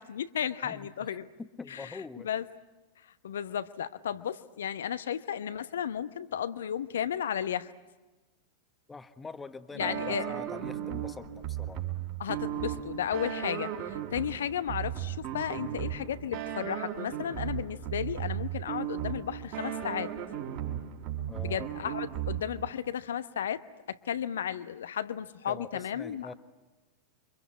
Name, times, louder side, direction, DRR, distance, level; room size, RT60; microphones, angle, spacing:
voice 1, 0.0-1.3 1.7-1.9 2.2-2.4 3.2-7.7 9.8-10.4 12.2-20.1 21.4-26.3, left 9 dB, 65° left, 13 dB, 1.0 m, -34 dB
voice 2, 0.6-2.3 8.9-11.9 21.3-21.7 25.5-26.3, left 4 dB, 15° left, 10 dB, 1.4 m, -44 dB
sound 1, 9.8-22.7, right 11 dB, 45° right, 3.9 m, -36 dB
29.0 x 25.0 x 8.3 m, 1.2 s
figure-of-eight pair, 90°, 0 cm